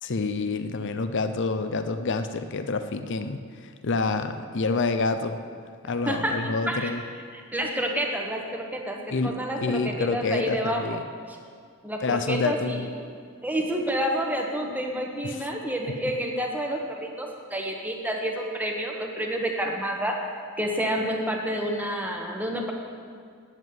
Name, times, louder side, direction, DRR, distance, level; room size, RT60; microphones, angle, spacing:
voice 1, 0.0-5.4 5.8-7.0 9.1-11.0 12.0-12.8 15.2-15.5, left 3 dB, 60° left, 9 dB, 0.6 m, -28 dB
voice 2, 6.1-6.9 7.3-11.0 11.8-12.9 13.4-20.2 20.6-22.7, equal, 10° right, 1 dB, 1.3 m, -29 dB
9.3 x 8.1 x 9.4 m, 2.1 s
head